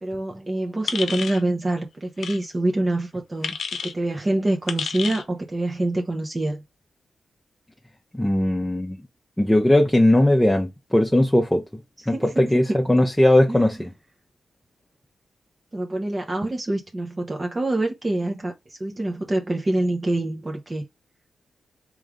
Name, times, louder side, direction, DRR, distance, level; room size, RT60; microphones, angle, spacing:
voice 1, 0.0-3.5 3.8-6.6 12.1-12.3 13.5-13.8 15.7-20.8, right 1 dB, 30° right, 1.0 m, -26 dB
sound 1, 0.9-1.4 2.2-2.4 3.4-3.9 4.7-5.2, left 6 dB, 75° left, 0.6 m, -30 dB
voice 2, 8.1-9.0 9.4-11.6 12.1-13.9, left 1 dB, 10° left, 0.8 m, -19 dB
3.4 x 3.2 x 3.6 m
cardioid pair, 55°, 0 cm